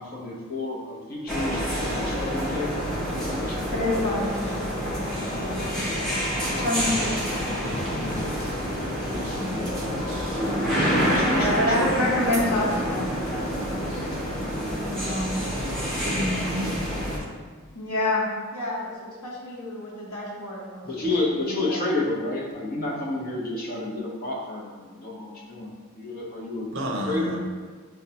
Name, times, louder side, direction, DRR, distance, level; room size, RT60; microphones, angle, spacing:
voice 1, 0.0-2.7 3.2-3.7 4.2-4.5 5.1-6.2 7.6-8.6 9.0-9.7 10.0-10.1 10.9-11.9 14.4-14.9 20.8-26.7 27.1-27.4, left 2 dB, 40° left, -2 dB, 0.6 m, -31 dB
sound 1, 1.3-17.2, equal, ahead, 0.6 m, -27 dB
voice 2, 3.7-4.3 6.6-7.4 11.3-14.1 14.9-15.4 17.7-18.3 18.5-21.1 21.5-21.8, left 1 dB, 80° left, -5 dB, 0.8 m, -28 dB
voice 3, 9.4-10.4 16.0-16.7 26.7-27.4, equal, 60° right, 0 dB, 0.6 m, -31 dB
5.6 x 2.1 x 2.8 m, 1.5 s
head